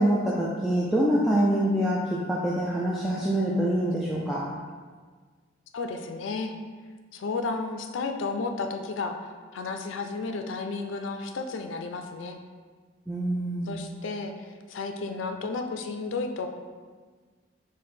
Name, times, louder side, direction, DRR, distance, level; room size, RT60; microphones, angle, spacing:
voice 1, 0.0-2.0 2.3-4.4 13.1-13.9, right 1 dB, ahead, -7 dB, 0.4 m, -25 dB
voice 2, 5.7-6.5 7.1-9.2 9.5-12.4 13.7-14.3 14.7-16.5, left 3 dB, 85° left, 6 dB, 0.4 m, -32 dB
4.9 x 2.1 x 4.1 m, 1.5 s
head